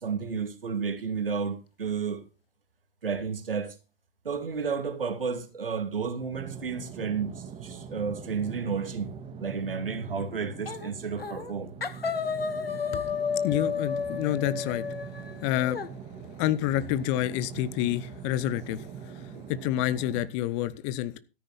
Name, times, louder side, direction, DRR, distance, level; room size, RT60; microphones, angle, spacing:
voice 1, 0.0-2.2 3.0-3.8 4.2-9.1 9.4-11.7 19.3-19.4, right 5 dB, 70° right, 2.4 m, -32 dB
sound 1, 6.3-20.3, right 7 dB, 20° right, 1.9 m, -42 dB
sound 2, 10.7-10.9 11.2-11.5 11.8-15.9, left 6 dB, 80° left, 1.7 m, -32 dB
voice 2, 13.4-14.8 15.4-15.8 16.4-21.1, left 13 dB, 30° left, 0.9 m, -28 dB
13.5 x 10.0 x 4.1 m
figure-of-eight pair, 115°, 29 cm